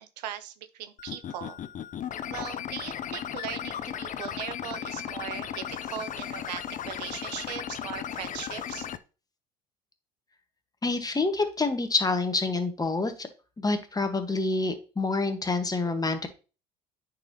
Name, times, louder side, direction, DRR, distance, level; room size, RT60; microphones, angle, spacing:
voice 1, 0.0-1.6 2.3-8.9, right 10 dB, 80° right, 12 dB, 0.6 m, -39 dB
sound 1, 1.0-9.0, left 9 dB, 40° left, 0.6 m, -36 dB
voice 2, 10.8-13.3 13.6-16.3, left 3 dB, 20° left, 7 dB, 1.4 m, -27 dB
9.5 x 4.3 x 2.9 m, 0.34 s
hypercardioid pair, 65°, 21 cm